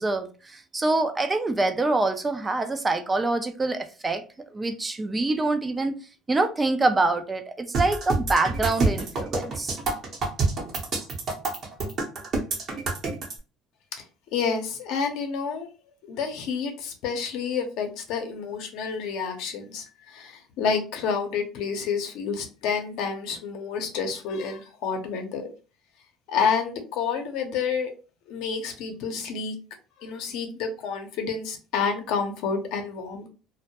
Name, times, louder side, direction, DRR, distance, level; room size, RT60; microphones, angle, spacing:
voice 1, 0.0-4.2 4.5-5.9 6.3-9.8, right 2 dB, 20° right, 0.3 m, -25 dB
sound 1, 7.7-13.3, right 3 dB, 45° right, 0.8 m, -27 dB
voice 2, 14.3-15.7 16.1-25.5 26.3-27.9 28.3-29.6 30.0-33.3, left 6 dB, 75° left, 0.6 m, -29 dB
2.1 x 2.1 x 2.7 m
supercardioid pair, 100°, 0 cm